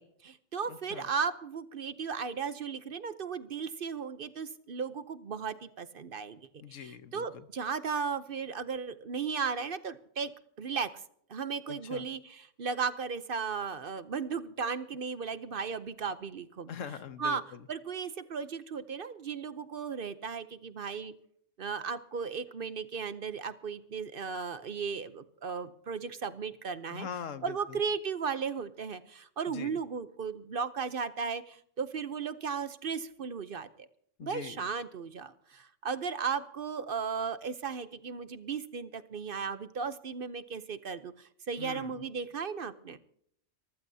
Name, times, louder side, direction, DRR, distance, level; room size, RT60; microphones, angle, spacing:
voice 1, 0.0-6.4 6.7-10.3 10.6-10.9 11.3-16.7 17.2-17.4 17.7-21.1 21.6-27.1 27.4-33.9 34.2-43.0, right 6 dB, 50° right, 13 dB, 0.8 m, -36 dB
voice 2, 0.7-1.1 6.6-7.5 11.7-12.1 16.7-17.7 26.9-27.8 29.5-29.8 34.2-34.7 41.6-42.1, left 7 dB, 90° left, 12 dB, 1.3 m, -43 dB
25.0 x 14.5 x 2.7 m, 0.65 s
omnidirectional pair, 1.3 m